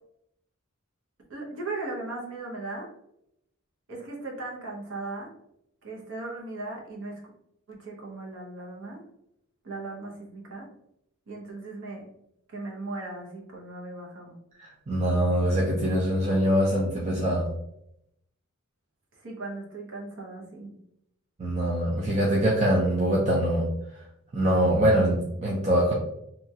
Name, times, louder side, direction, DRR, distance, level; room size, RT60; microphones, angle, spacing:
voice 1, 1.3-2.9 3.9-5.3 5.8-7.2 7.7-9.0 9.6-10.7 11.3-12.0 12.5-14.4 19.1-20.7, right 2 dB, 65° right, -1 dB, 0.8 m, -37 dB
voice 2, 14.6-17.5 21.4-23.7 24.3-25.9, right 1 dB, 35° right, -4 dB, 0.5 m, -23 dB
2.9 x 2.3 x 2.7 m, 0.79 s
head